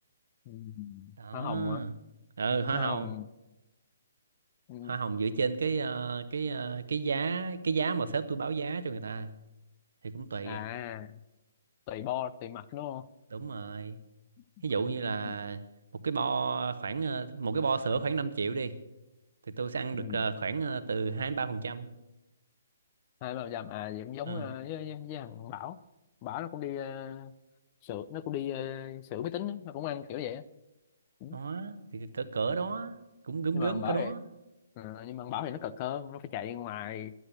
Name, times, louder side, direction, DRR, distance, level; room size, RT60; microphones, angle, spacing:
voice 1, 0.5-1.8 2.7-3.3 4.7-4.9 10.4-11.2 11.9-13.0 15.2-15.4 20.0-20.3 23.2-25.8 26.2-27.3 27.8-30.5 31.2-31.4 33.5-34.1 34.8-37.1, left 11 dB, 30° left, 14 dB, 0.5 m, -37 dB
voice 2, 1.2-1.9 2.4-3.1 4.8-9.3 10.0-10.6 13.3-14.0 14.6-15.6 16.0-18.7 19.6-21.9 24.3-24.5 31.3-32.9 33.3-34.2, right 4 dB, 60° right, 11 dB, 1.0 m, -32 dB
11.0 x 9.1 x 8.1 m, 1.0 s
figure-of-eight pair, 130°, 0 cm